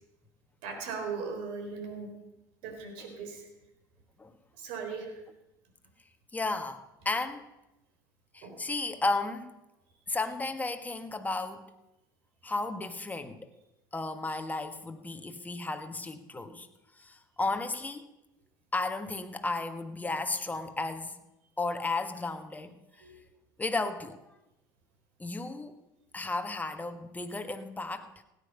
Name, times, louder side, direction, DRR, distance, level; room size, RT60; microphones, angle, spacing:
voice 1, 0.6-2.1 2.6-3.5 4.6-5.2 8.4-8.6 23.0-23.2, right 5 dB, 70° right, 4 dB, 3.7 m, -38 dB
voice 2, 6.3-7.4 8.3-9.5 10.1-11.7 12.4-13.5 13.9-16.7 17.0-18.1 18.7-21.2 21.6-22.8 23.6-24.2 25.2-25.8 26.1-28.1, left 3 dB, 15° left, 7 dB, 1.5 m, -34 dB
16.5 x 10.0 x 5.5 m, 0.93 s
hypercardioid pair, 75°, 10 cm